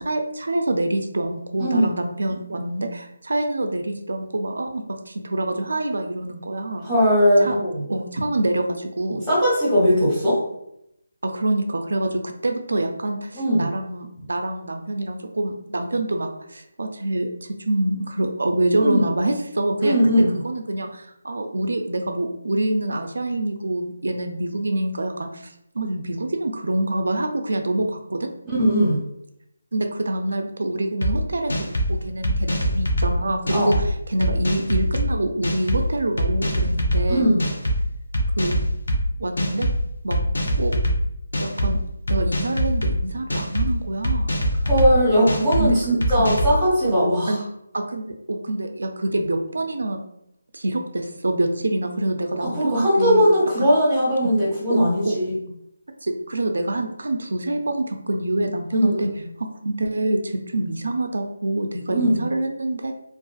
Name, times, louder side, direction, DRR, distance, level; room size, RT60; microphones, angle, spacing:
voice 1, 0.0-6.9 7.4-7.5 7.9-9.3 11.2-25.5 25.7-28.3 29.7-37.3 38.4-38.6 39.2-39.7 40.0-40.2 40.6-40.7 41.4-41.8 42.1-44.3 45.6-45.8 46.1-46.3 46.8-46.9 47.3-47.4 47.7-50.0 50.5-53.3 53.6-53.7 54.7-55.2 56.0-59.1 59.4-62.9, right 1 dB, 75° right, 5 dB, 0.3 m, -26 dB
voice 2, 1.6-1.9 6.8-7.8 9.3-10.4 13.3-13.7 18.8-19.1 19.8-20.4 28.6-29.0 33.5-33.7 37.1-37.4 44.6-47.4 52.4-55.3 58.7-59.0 61.9-62.2, equal, 5° left, -10 dB, 1.2 m, -19 dB
sound 1, 31.0-31.1 31.5-31.9 32.2-33.1 33.5-33.8 34.2-35.0 35.4-35.8 36.2-37.0 37.4-37.8 38.1-39.0 39.4-39.8 40.1-41.0 41.3-41.7 42.1-42.9 43.3-43.7 44.0-44.9 45.3-45.6 46.0-46.5, right 1 dB, 75° left, 0.6 m, -23 dB
2.4 x 2.3 x 2.3 m, 0.79 s
figure-of-eight pair, 160°, 0 cm